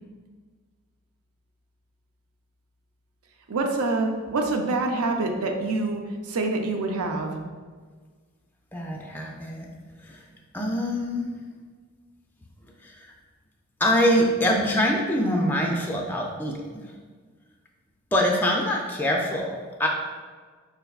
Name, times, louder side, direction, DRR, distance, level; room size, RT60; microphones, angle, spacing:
voice 1, 3.5-7.4, right 2 dB, 80° right, 3 dB, 0.5 m, -26 dB
voice 2, 8.7-9.7 10.0-10.2 10.5-11.3 12.8-12.9 13.8-16.6 18.1-19.9, equal, 10° left, 0 dB, 0.3 m, -24 dB
4.6 x 3.3 x 2.3 m, 1.5 s
head